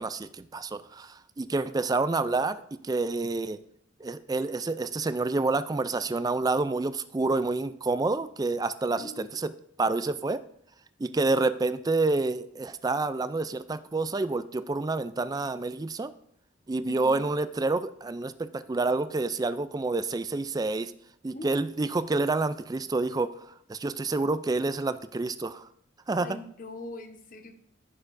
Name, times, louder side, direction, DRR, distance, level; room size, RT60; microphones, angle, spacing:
voice 1, 0.0-3.6 4.0-9.5 9.8-10.4 11.0-16.1 16.7-20.9 21.2-25.7 26.1-26.3, right 3 dB, 20° right, 13 dB, 0.3 m, -28 dB
voice 2, 8.9-9.4 16.9-17.3 21.3-21.9 26.1-27.5, left 2 dB, 45° left, 6 dB, 1.0 m, -43 dB
14.0 x 6.6 x 2.6 m, 0.69 s
head